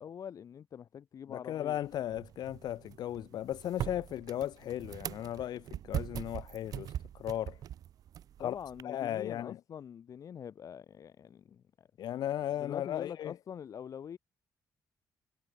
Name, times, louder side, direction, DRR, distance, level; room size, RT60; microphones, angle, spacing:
voice 1, 0.0-1.8 8.4-11.9 12.6-14.2, left 8 dB, 50° left, 0.8 m, -44 dB
voice 2, 1.3-7.6 8.4-8.6 8.8-9.6 12.0-13.3, left 12 dB, 80° left, 1.8 m, -36 dB
sound 1, 1.8-8.8, right 11 dB, 60° right, 0.3 m, -42 dB
cardioid pair, 115°, 7 cm